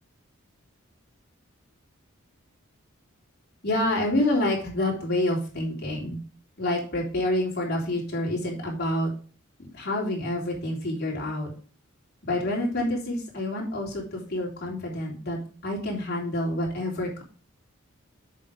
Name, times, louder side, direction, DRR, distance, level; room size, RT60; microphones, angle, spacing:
voice 1, 3.6-6.2 6.6-9.1 9.6-11.5 12.3-17.2, left 1 dB, 50° left, -3 dB, 3.4 m, -28 dB
7.5 x 5.3 x 5.1 m, 0.39 s
head